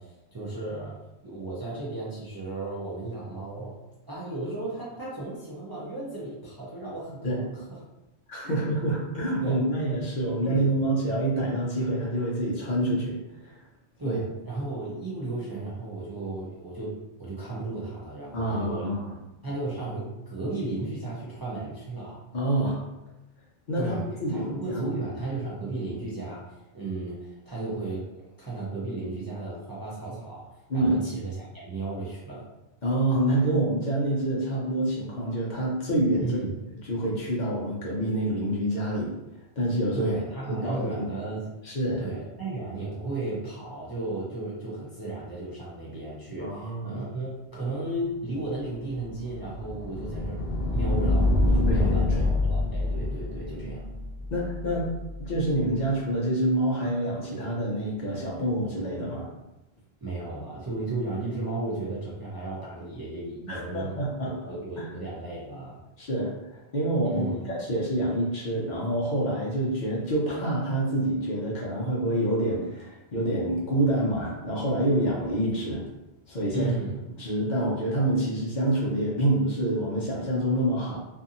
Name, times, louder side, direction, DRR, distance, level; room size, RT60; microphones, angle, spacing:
voice 1, 0.0-3.8 4.1-7.3 7.5-7.8 8.4-8.7 9.4-9.6 10.4-10.7 14.0-19.0 19.4-22.2 23.8-28.1 28.4-30.5 30.7-32.5 36.2-36.5 39.9-41.6 42.0-50.4 50.7-53.9 60.0-64.0 64.2-65.8 67.0-67.4 76.5-77.0, right 2 dB, 30° right, -8 dB, 0.5 m, -34 dB
voice 2, 8.3-13.2 13.4-13.5 14.0-14.2 18.3-19.2 22.3-22.8 23.7-24.9 30.7-31.0 32.8-36.4 36.8-39.1 39.6-40.1 40.5-41.1 41.6-42.1 46.4-47.0 51.7-51.8 52.1-52.3 54.3-54.9 55.2-59.3 63.5-64.5 64.8-64.9 66.0-75.9 76.3-76.7 77.2-81.0, right 1 dB, 50° left, -5 dB, 0.7 m, -27 dB
sound 1, 48.7-55.5, left 2 dB, 45° right, 1.2 m, -27 dB
2.6 x 2.6 x 2.5 m, 0.99 s
omnidirectional pair, 1.1 m